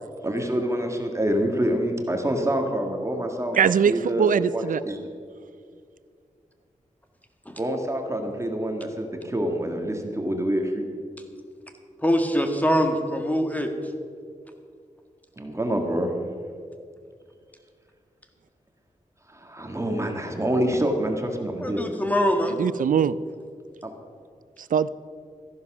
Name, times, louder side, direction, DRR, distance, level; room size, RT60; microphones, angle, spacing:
voice 1, 0.2-5.1 7.6-11.0 15.4-16.1 19.3-21.8 23.8-23.9, right 1 dB, 20° right, 1.8 m, -26 dB
voice 2, 3.6-4.8 22.6-23.2 24.7-24.9, right 7 dB, 85° right, 0.4 m, -21 dB
voice 3, 12.0-13.7 21.6-22.6, equal, 10° left, 1.8 m, -23 dB
14.0 x 11.0 x 6.1 m
wide cardioid pair, 80°, 13 cm